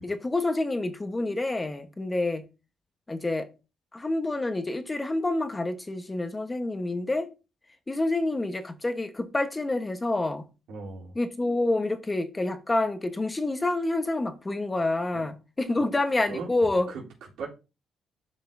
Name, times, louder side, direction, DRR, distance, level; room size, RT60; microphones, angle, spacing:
voice 1, 0.0-2.4 3.1-3.5 3.9-7.3 7.9-10.4 11.1-16.9, left 2 dB, 20° left, 1.2 m, -28 dB
voice 2, 10.7-11.2 15.1-15.2 16.3-16.5 16.9-17.5, right 4 dB, 85° right, 3.4 m, -38 dB
11.5 x 5.3 x 2.7 m
cardioid pair, 90°, 0 cm